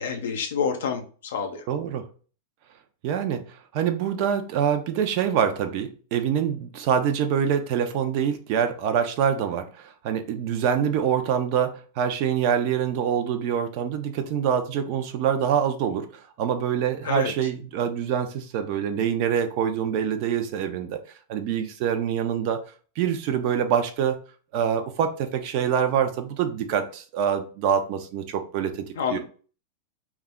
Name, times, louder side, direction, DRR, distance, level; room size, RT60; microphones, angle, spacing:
voice 1, 0.0-1.7 17.0-17.3 29.0-29.2, left 6 dB, 85° left, 5 dB, 0.5 m, -28 dB
voice 2, 1.7-2.0 3.0-3.4 3.7-21.0 21.3-22.6 23.0-24.2 24.5-28.8 29.1-29.2, right 8 dB, 50° right, 7 dB, 0.5 m, -25 dB
2.3 x 2.1 x 3.5 m, 0.39 s
supercardioid pair, 145°, 0 cm